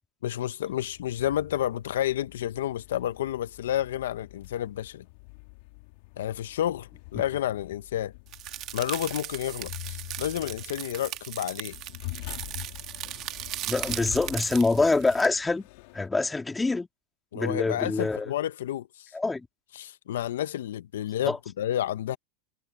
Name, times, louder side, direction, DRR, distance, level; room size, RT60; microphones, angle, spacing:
voice 1, 0.2-5.0 6.2-8.1 8.7-11.8 17.3-19.1 19.7-22.2, left 11 dB, 90° left, 0.7 m, -30 dB
sound 1, 0.6-16.1, left 23 dB, 65° left, 2.5 m, -45 dB
sound 2, 8.3-15.3, right 14 dB, 45° right, 1.6 m, -38 dB
voice 2, 13.7-15.6 15.9-16.9 17.3-18.3 19.1-19.5 21.3-21.4, left 3 dB, 10° left, 2.1 m, -25 dB
supercardioid pair, 125°, 0 cm